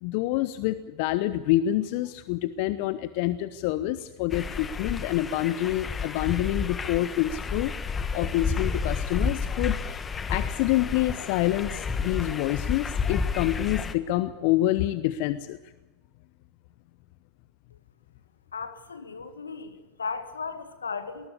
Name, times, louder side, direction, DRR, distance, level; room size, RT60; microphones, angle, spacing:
voice 1, 0.0-10.0 10.3-15.6, left 14 dB, 60° left, 14 dB, 0.9 m, -27 dB
sound 1, 4.3-13.9, left 5 dB, 25° left, 1.5 m, -31 dB
voice 2, 18.5-21.3, left 5 dB, 85° left, 11 dB, 1.8 m, -36 dB
20.5 x 19.0 x 8.3 m, 1.2 s
figure-of-eight pair, 85°, 0 cm